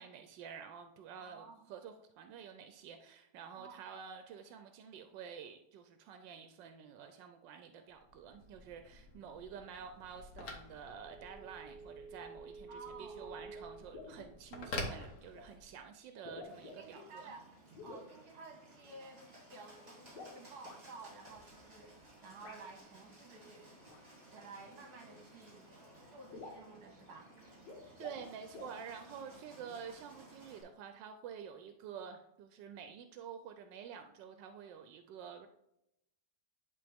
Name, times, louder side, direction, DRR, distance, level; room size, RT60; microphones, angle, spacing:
voice 1, 0.0-17.3 28.0-35.5, right 7 dB, 90° right, 7 dB, 1.3 m, -49 dB
voice 2, 1.2-1.6 3.6-3.9 12.7-13.5 16.8-17.5 17.8-23.7 24.3-25.7 26.1-27.3, right 3 dB, 60° right, 3 dB, 1.8 m, -53 dB
Telephone, 8.0-15.8, left 1 dB, 60° left, 1.6 m, -47 dB
sound 1, 13.5-13.6 13.9-14.3 15.3-15.5 16.1-17.0 17.7-18.1 20.0-20.8 22.4-22.6 23.8-24.0 25.2-25.3 25.6-25.7 26.0-26.1 26.3-26.7 27.5-28.3 28.5-28.8, left 3 dB, 80° left, 1.9 m, -50 dB
Bird, 16.4-30.6, right 1 dB, 35° right, 3.0 m, -58 dB
10.5 x 3.8 x 3.5 m, 0.81 s
omnidirectional pair, 1.9 m